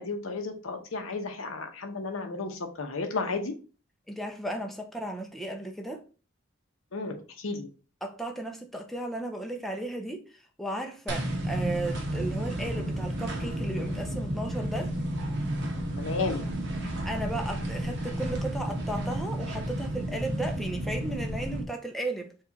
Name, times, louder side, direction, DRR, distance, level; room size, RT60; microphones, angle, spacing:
voice 1, 0.0-3.5 6.9-7.7 16.0-16.5, left 3 dB, 85° left, 0.8 m, -33 dB
voice 2, 4.1-6.0 8.0-10.2 10.6-14.9 16.8-22.3, right 1 dB, ahead, 0.6 m, -35 dB
sound 1, 11.1-21.6, right 1 dB, 60° right, 1.0 m, -32 dB
4.7 x 2.4 x 4.0 m
head